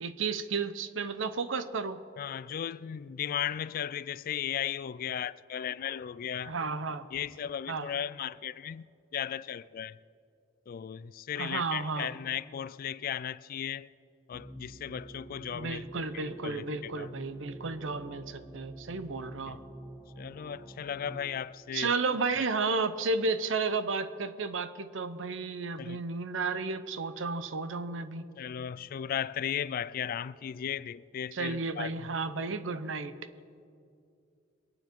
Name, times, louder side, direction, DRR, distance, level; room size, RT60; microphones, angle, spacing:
voice 1, 0.0-2.0 6.4-7.1 7.7-7.9 11.4-12.1 15.5-19.6 21.7-28.3 31.3-33.1, right 4 dB, 75° right, 0.7 m, -32 dB
voice 2, 2.2-6.5 7.1-8.9 9.1-10.0 10.7-13.9 14.3-15.8 16.4-17.1 19.5-19.6 20.2-21.9 25.8-26.0 28.4-32.1, left 9 dB, 45° left, 0.3 m, -36 dB
sound 1, 14.3-21.4, right 2 dB, 10° right, 0.6 m, -47 dB
23.5 x 9.2 x 4.6 m
head